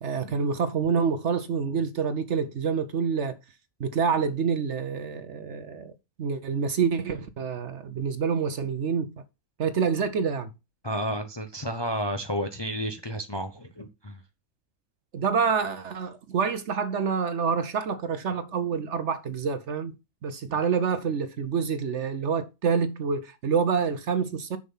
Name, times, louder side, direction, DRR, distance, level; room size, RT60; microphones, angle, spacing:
voice 1, 0.0-3.4 3.8-5.9 6.2-9.1 9.6-10.5 15.1-20.0 20.2-24.6, right 6 dB, 60° right, 1.0 m, -27 dB
voice 2, 10.8-14.2, equal, 25° left, 0.6 m, -31 dB
6.9 x 6.4 x 5.5 m
omnidirectional pair, 1.6 m